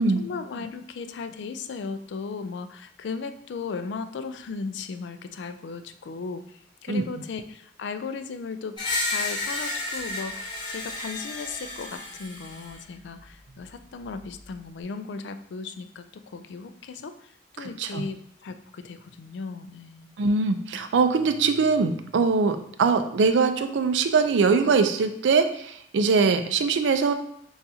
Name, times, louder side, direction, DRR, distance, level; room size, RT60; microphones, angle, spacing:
voice 1, 0.2-8.8 9.0-20.1, left 4 dB, 75° left, 10 dB, 0.4 m, -36 dB
Screech, 8.8-12.8, left 2 dB, 25° left, 1.1 m, -32 dB
voice 2, 17.6-18.0 20.2-27.1, right 4 dB, 85° right, 9 dB, 0.4 m, -22 dB
6.8 x 2.4 x 2.7 m, 0.69 s
head